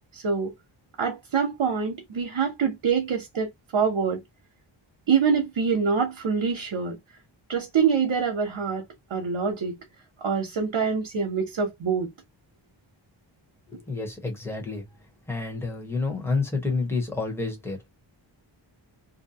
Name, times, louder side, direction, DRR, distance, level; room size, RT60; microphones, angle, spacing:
voice 1, 0.1-0.5 1.0-3.5 3.7-4.2 5.1-7.0 7.5-8.8 9.1-9.8 10.2-12.1, right 6 dB, 70° right, 0.9 m, -25 dB
voice 2, 13.7-14.8 15.3-17.8, left 3 dB, 5° left, 1.0 m, -29 dB
2.6 x 2.2 x 2.6 m
wide cardioid pair, 80°, 47 cm